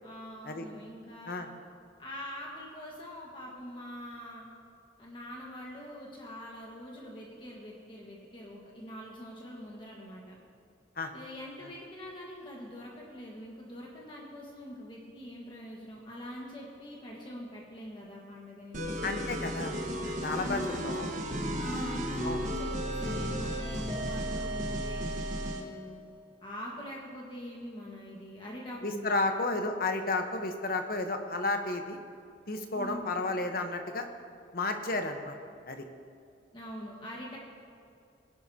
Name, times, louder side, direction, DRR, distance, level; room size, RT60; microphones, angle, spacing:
voice 1, 0.0-1.4 2.0-4.4 5.0-10.4 11.1-18.8 20.1-21.1 21.6-25.0 25.5-26.0 26.4-29.2 32.7-33.2 36.5-37.4, equal, 25° left, -3 dB, 1.5 m, -43 dB
sound 1, 18.7-25.7, equal, 45° right, 1.4 m, -34 dB
voice 2, 19.0-19.8 20.0-21.1 22.2-22.4 28.8-32.0 32.5-34.1 34.5-35.3 35.7-35.8, left 2 dB, 50° left, 5 dB, 1.0 m, -32 dB
21.0 x 11.0 x 2.8 m, 2.4 s
head